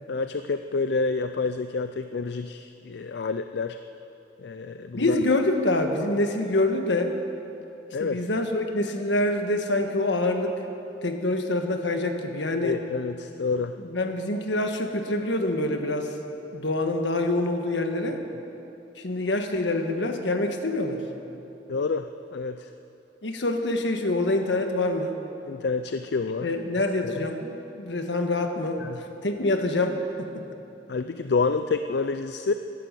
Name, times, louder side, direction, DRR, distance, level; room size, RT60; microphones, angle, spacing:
voice 1, 0.1-3.8 4.4-5.2 7.9-8.2 12.6-13.8 21.7-22.7 25.5-26.5 27.0-27.2 28.8-29.0 30.9-32.5, left 4 dB, 65° left, 9 dB, 0.4 m, -28 dB
voice 2, 4.9-7.1 8.0-10.6 11.0-12.8 13.8-16.1 16.5-18.2 19.0-21.0 23.2-25.2 26.4-30.3, left 2 dB, 80° left, 5 dB, 1.5 m, -26 dB
16.5 x 12.5 x 6.8 m, 2.9 s
head